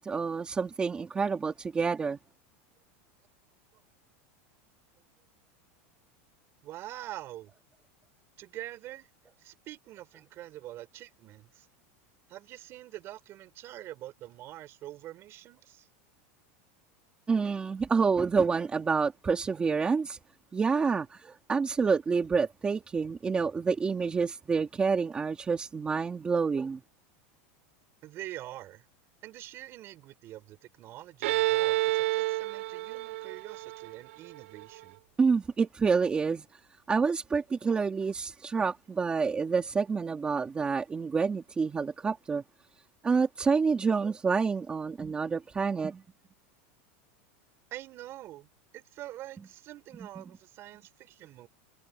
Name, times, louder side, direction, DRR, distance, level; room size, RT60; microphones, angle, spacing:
voice 1, 0.0-2.2 17.3-20.2 20.5-26.8 35.2-36.6 36.9-42.4 43.0-46.0, right 5 dB, 15° right, 2.1 m, -28 dB
voice 2, 6.6-7.5 8.4-9.1 9.4-11.7 12.3-15.9 28.0-28.9 29.2-35.0 47.7-51.5, right 14 dB, 35° right, 5.0 m, -45 dB
Bowed string instrument, 31.2-34.8, right 18 dB, 75° right, 4.3 m, -29 dB
supercardioid pair, 155°, 7 cm